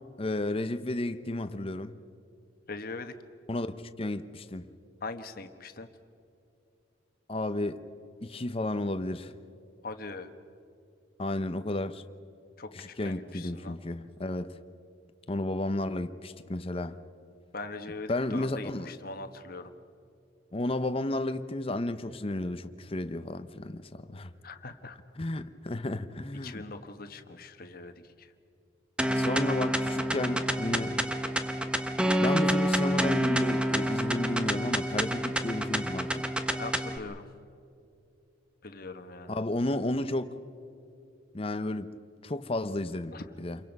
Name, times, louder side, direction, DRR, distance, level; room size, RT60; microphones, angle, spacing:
voice 1, 0.2-2.0 3.5-4.7 7.3-7.8 8.2-9.3 11.2-12.0 12.7-14.5 15.3-17.0 18.1-18.9 20.5-24.3 25.2-26.6 29.0-31.0 32.2-36.2 39.3-40.3 41.3-41.9 42.2-43.6, left 1 dB, 30° left, 0.7 m, -32 dB
voice 2, 2.7-3.1 5.0-5.9 9.8-10.3 12.6-13.8 17.5-19.7 24.4-25.0 26.4-28.3 36.6-37.3 38.6-39.4 43.1-43.2, left 3 dB, 50° left, 1.3 m, -41 dB
sound 1, 29.0-37.0, equal, 5° right, 1.0 m, -28 dB
28.5 x 23.5 x 5.4 m
head